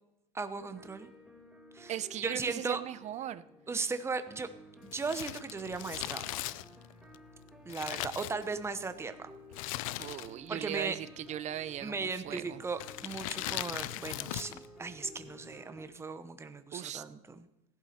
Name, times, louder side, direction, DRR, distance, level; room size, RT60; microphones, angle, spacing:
voice 1, 0.3-1.1 1.7-1.9 2.2-2.8 3.7-4.5 4.8-6.5 7.7-9.3 10.5-11.0 11.8-17.5, right 4 dB, 15° right, 10 dB, 1.0 m, -37 dB
sound 1, 0.6-15.9, equal, ahead, 2.5 m, -55 dB
voice 2, 1.9-3.4 10.0-12.6 16.7-17.0, right 11 dB, 45° right, 15 dB, 0.7 m, -38 dB
Crumpling crinkling, 4.9-8.9 9.5-10.6 10.8-10.9 11.7-12.1 12.7-14.7 14.9-15.0, left 17 dB, 85° left, 0.5 m, -39 dB
16.0 x 11.5 x 4.4 m, 0.89 s
supercardioid pair, 105°, 17 cm